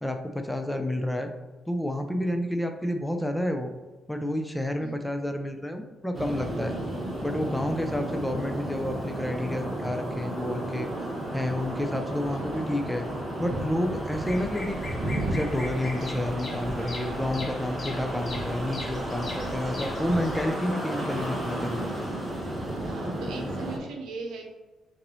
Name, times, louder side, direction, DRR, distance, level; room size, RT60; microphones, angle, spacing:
voice 1, 0.0-1.3 1.7-3.7 4.1-6.7 7.2-10.9 11.3-13.1 13.4-14.8 15.3-22.1, left 1 dB, 5° left, 5 dB, 0.5 m, -30 dB
voice 2, 4.8-5.2 12.3-12.8 16.8-17.1 19.4-19.8 22.8-24.4, right 4 dB, 80° right, 2 dB, 0.8 m, -41 dB
sound 1, 6.1-23.8, right 1 dB, 30° right, 1.0 m, -33 dB
Bird vocalization bird call bird song, 14.1-20.5, left 2 dB, 30° left, 1.0 m, -39 dB
5.8 x 2.6 x 3.1 m, 1.2 s
cardioid pair, 90°, 0 cm